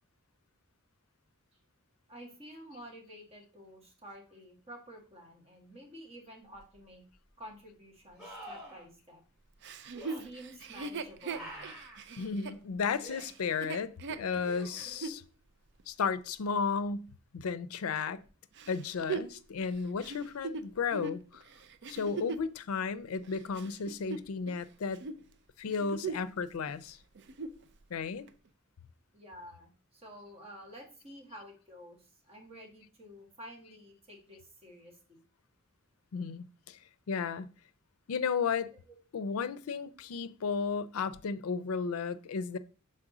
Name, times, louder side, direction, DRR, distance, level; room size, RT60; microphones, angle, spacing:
voice 1, 2.1-7.0 7.4-9.2 10.2-11.8 29.1-35.2 38.9-39.0, equal, 30° right, 1.7 m, -50 dB
sound 1, 6.6-6.7 8.2-8.8 9.9-10.2 11.3-12.0 13.0-13.2 14.4-15.1 18.2-18.3, equal, 5° right, 3.7 m, -47 dB
Chuckle chortle, 9.6-15.2 15.8-15.9 18.6-22.5 23.2-24.6 24.9-25.2 25.6-26.4 26.7-26.8 27.2-27.6 28.3-28.4, right 4 dB, 55° right, 0.5 m, -40 dB
voice 2, 12.2-15.2 15.9-17.1 17.3-18.2 18.7-21.4 21.9-25.0 25.6-27.0 27.9-28.3 36.1-36.8 37.1-37.5 38.1-38.7 39.1-42.6, left 5 dB, 85° left, 0.5 m, -34 dB
6.0 x 4.3 x 3.8 m
head